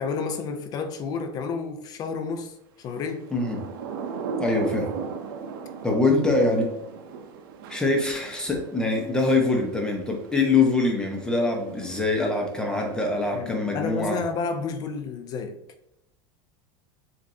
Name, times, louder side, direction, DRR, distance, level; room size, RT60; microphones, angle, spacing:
voice 1, 0.0-3.3 13.3-15.6, left 5 dB, 35° left, 0.5 m, -31 dB
Thunder / Rain, 3.1-13.7, right 5 dB, 80° right, 0.6 m, -39 dB
voice 2, 3.3-3.6 4.4-4.9 5.8-6.7 7.7-14.2, left 3 dB, 5° left, 0.9 m, -24 dB
7.3 x 2.6 x 2.7 m
supercardioid pair, 150°, 12 cm